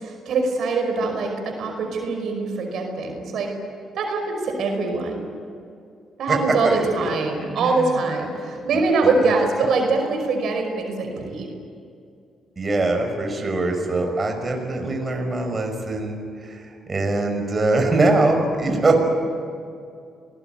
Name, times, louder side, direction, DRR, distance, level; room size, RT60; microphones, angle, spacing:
voice 1, 0.0-3.5 3.9-5.2 6.2-11.5, right 3 dB, 70° right, 3 dB, 5.2 m, -23 dB
voice 2, 6.6-7.1 7.4-8.0 8.7-8.8 12.6-19.0, right 2 dB, 30° right, 3 dB, 5.6 m, -23 dB
28.0 x 19.5 x 9.3 m, 2.4 s
cardioid pair, 90°, 0 cm